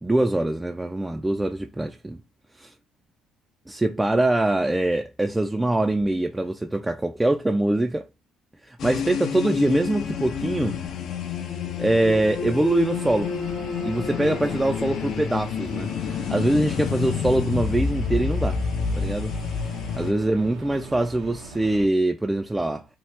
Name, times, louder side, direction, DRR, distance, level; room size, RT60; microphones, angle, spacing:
voice 1, 0.0-2.2 2.6-2.7 3.7-8.1 8.6-10.8 11.8-13.4 13.8-18.6 19.0-19.3 20.0-22.9, right 1 dB, 10° right, 0.3 m, -23 dB
sound 1, 8.8-20.1, left 6 dB, 65° left, 0.5 m, -29 dB
sound 2, 12.9-21.9, right 3 dB, 80° right, 0.7 m, -41 dB
2.9 x 2.3 x 3.2 m
supercardioid pair, 75°, 0 cm